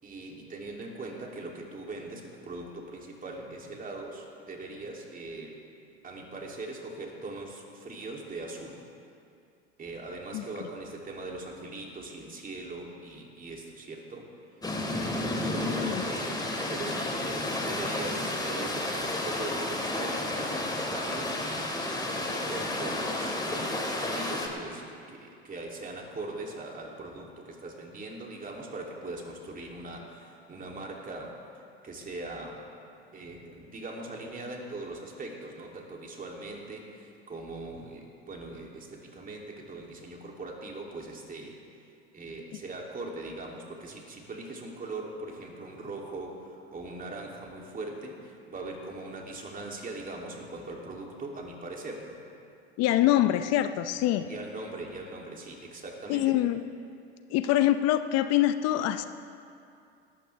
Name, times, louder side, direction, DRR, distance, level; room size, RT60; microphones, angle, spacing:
voice 1, 0.0-5.6 6.0-8.8 9.8-14.3 14.9-21.7 22.1-31.4 31.8-32.7 33.1-41.6 42.1-52.2 54.3-56.4, right 2 dB, 25° right, -1 dB, 2.9 m, -41 dB
sound 1, 14.6-24.5, left 1 dB, 10° left, 2.5 m, -31 dB
voice 2, 15.6-16.0 52.8-54.3 56.1-56.6 57.3-59.0, left 13 dB, 55° left, 10 dB, 0.7 m, -25 dB
18.5 x 14.5 x 3.4 m, 2.5 s
hypercardioid pair, 80°, 31 cm